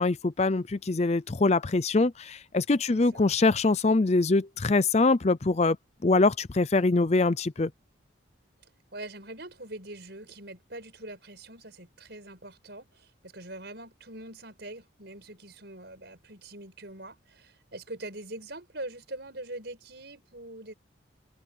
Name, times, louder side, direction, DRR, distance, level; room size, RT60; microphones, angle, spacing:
voice 1, 0.0-5.8 6.0-7.7, left 3 dB, 35° left, 0.5 m, -24 dB
voice 2, 2.9-3.2 8.9-20.7, right 1 dB, 55° right, 6.9 m, -43 dB
head